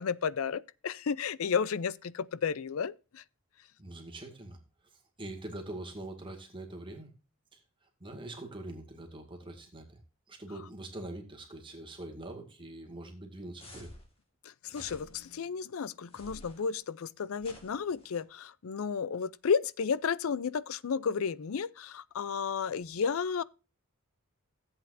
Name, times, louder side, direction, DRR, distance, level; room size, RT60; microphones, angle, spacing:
voice 1, 0.0-3.2 14.6-23.4, left 6 dB, 75° left, 0.5 m, -32 dB
voice 2, 3.8-4.6 4.9-7.1 7.5-10.0 10.3-13.9, right 1 dB, 25° right, 2.1 m, -44 dB
sound 1, 13.6-14.1 14.7-15.3 16.1-16.6 17.4-18.2, equal, 30° left, 2.6 m, -51 dB
15.0 x 8.1 x 2.6 m
head